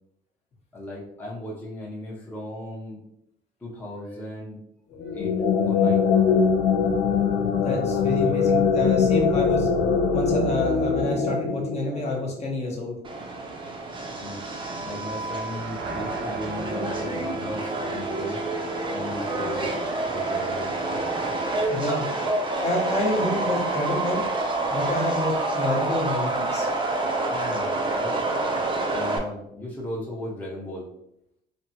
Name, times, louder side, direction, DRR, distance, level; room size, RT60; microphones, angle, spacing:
voice 1, 0.7-3.0 3.6-4.6 5.1-5.4 5.7-6.1 14.2-14.4 14.8-18.4 18.9-19.8 20.1-21.1 27.3-28.2 28.9-30.9, left 1 dB, 10° left, -5 dB, 0.7 m, -36 dB
sound 1, 5.0-12.4, left 5 dB, 85° left, 0.4 m, -22 dB
voice 2, 7.6-9.7 10.1-13.0 21.7-22.1 22.6-24.2 24.7-26.7, left 1 dB, 40° left, -1 dB, 0.9 m, -28 dB
Subway metro underground, 13.0-29.2, right 2 dB, 30° right, 0.6 m, -28 dB
sound 2, 15.2-19.3, right 4 dB, 75° right, 0.6 m, -40 dB
3.3 x 2.1 x 2.8 m, 0.77 s
cardioid pair, 110°, 17 cm